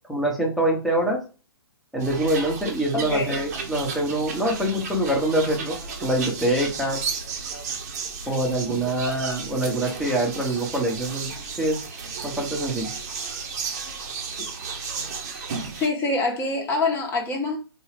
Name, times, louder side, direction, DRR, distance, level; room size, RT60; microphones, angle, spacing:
voice 1, 0.1-1.2 1.9-7.0 8.3-11.3 11.6-11.8 12.2-12.9, right 1 dB, ahead, 1.0 m, -25 dB
sound 1, 2.0-15.9, right 5 dB, 40° right, 0.9 m, -33 dB
voice 2, 2.9-3.4 14.4-14.5 15.8-17.6, left 3 dB, 15° left, 1.0 m, -25 dB
4.5 x 2.3 x 3.3 m
figure-of-eight pair, 125°, 13 cm